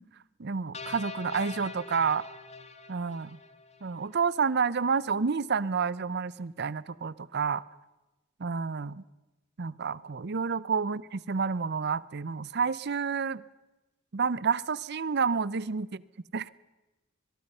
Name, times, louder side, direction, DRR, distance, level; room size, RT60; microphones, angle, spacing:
voice 1, 0.4-2.2 2.9-3.4 3.8-7.6 8.4-9.0 9.6-13.4 14.1-15.9 16.3-16.5, right 5 dB, 55° right, 20 dB, 0.6 m, -29 dB
sound 1, 0.7-4.1, left 4 dB, 35° left, 1.5 m, -43 dB
23.5 x 22.5 x 5.5 m, 1.1 s
head